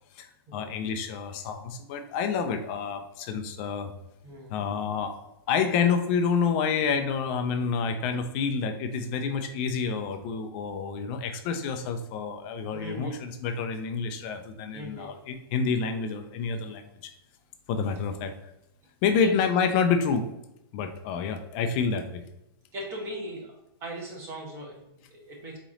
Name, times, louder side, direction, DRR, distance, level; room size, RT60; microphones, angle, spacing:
voice 1, 0.1-3.9 4.5-17.1 17.7-18.3 19.0-20.3 20.7-22.2, left 6 dB, 25° left, 7 dB, 0.3 m, -28 dB
voice 2, 4.2-4.5 12.7-13.2 14.7-15.2 16.6-16.7 19.2-19.3 22.7-23.5 23.8-25.6, equal, 20° right, -1 dB, 0.9 m, -39 dB
4.0 x 3.1 x 3.7 m, 0.89 s
hypercardioid pair, 160°, 13 cm